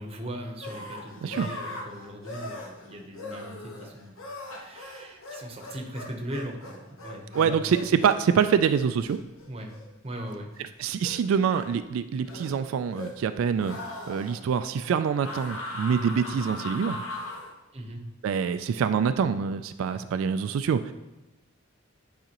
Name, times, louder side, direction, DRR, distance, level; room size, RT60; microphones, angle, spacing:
voice 1, 0.0-7.8 9.5-9.7 10.0-10.5 17.7-18.1 19.9-20.0, right 1 dB, 30° right, 3 dB, 0.8 m, -39 dB
sound 1, 0.6-10.5 11.0-11.7 12.2-13.3 13.6-14.4 15.2-17.5, left 1 dB, 80° left, 1.0 m, -39 dB
voice 2, 7.3-9.2 10.8-17.0 18.2-20.9, right 7 dB, 90° right, 10 dB, 0.3 m, -25 dB
9.3 x 5.0 x 2.9 m, 1.0 s
head